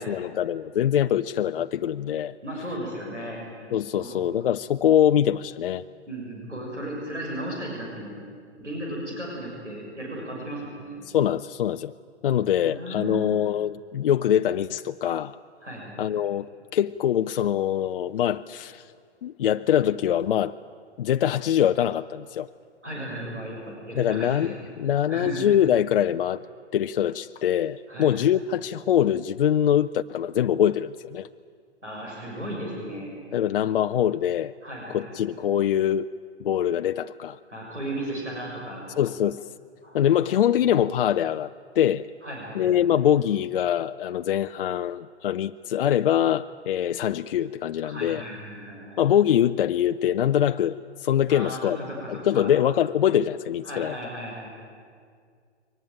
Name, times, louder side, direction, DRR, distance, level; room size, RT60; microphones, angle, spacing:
voice 1, 0.0-2.3 3.7-5.8 11.1-11.9 12.2-15.3 16.0-16.5 16.7-18.8 19.2-20.6 21.0-22.5 24.0-26.4 26.7-31.3 33.3-34.5 34.9-36.1 36.4-37.4 39.0-39.4 39.9-42.1 42.5-48.2 49.0-51.8 52.1-54.0, left 10 dB, 50° left, 0.5 m, -23 dB
voice 2, 2.4-3.5 3.9-4.2 6.1-8.2 8.6-11.0 12.5-13.2 15.6-16.1 22.8-24.6 25.1-25.5 27.9-28.3 31.8-33.2 34.6-35.2 37.5-38.9 39.8-40.3 42.2-42.8 47.8-49.0 51.3-51.6 51.9-52.5 53.6-54.5, right 1 dB, 90° right, 6.5 m, -35 dB
22.5 x 19.0 x 9.0 m
figure-of-eight pair, 115°, 35 cm